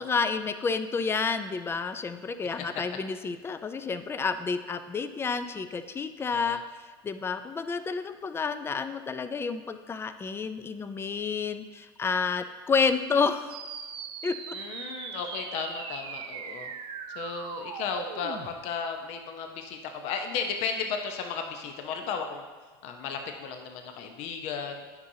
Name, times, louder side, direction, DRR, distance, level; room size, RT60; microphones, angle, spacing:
voice 1, 0.0-13.6 14.2-14.5, left 5 dB, 20° left, 10 dB, 0.4 m, -30 dB
sound 1, 13.5-18.5, right 6 dB, 45° right, 0.7 m, -39 dB
voice 2, 14.5-16.7 17.1-22.5 22.8-24.8, left 6 dB, 60° left, 5 dB, 0.8 m, -34 dB
9.5 x 5.5 x 2.8 m, 1.4 s
hypercardioid pair, 95°, 13 cm